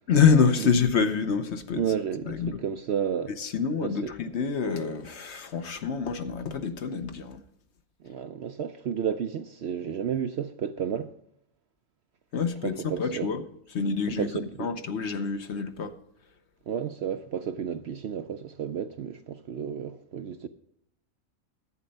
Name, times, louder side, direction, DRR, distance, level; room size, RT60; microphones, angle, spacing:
voice 1, 0.1-1.8 2.2-2.6 3.4-7.4 12.3-13.5 13.7-15.9, left 6 dB, 55° left, 1.1 m, -26 dB
voice 2, 1.8-3.3 3.8-4.1 8.0-11.1 12.6-13.3 14.2-14.7 16.7-20.5, right 8 dB, 65° right, 0.7 m, -32 dB
11.0 x 8.7 x 5.4 m
omnidirectional pair, 1.5 m